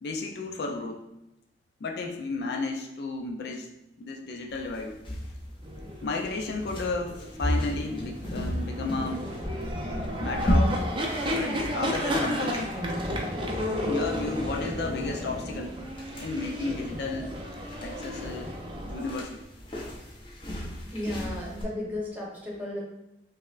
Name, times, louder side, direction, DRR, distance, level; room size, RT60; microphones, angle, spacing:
voice 1, 0.0-1.0 1.8-3.7 4.0-5.0 6.0-9.2 10.2-10.8 11.2-12.7 13.6-15.7 16.2-17.4 17.8-18.6 18.8-19.4, left 3 dB, 65° left, 2 dB, 0.4 m, -33 dB
sound 1, 4.5-21.6, equal, 30° left, 0.7 m, -34 dB
sound 2, 5.6-19.2, equal, 30° right, 0.4 m, -33 dB
voice 2, 19.9-20.4 20.9-22.8, left 1 dB, 10° right, -5 dB, 0.9 m, -35 dB
5.3 x 2.0 x 2.4 m, 0.89 s
head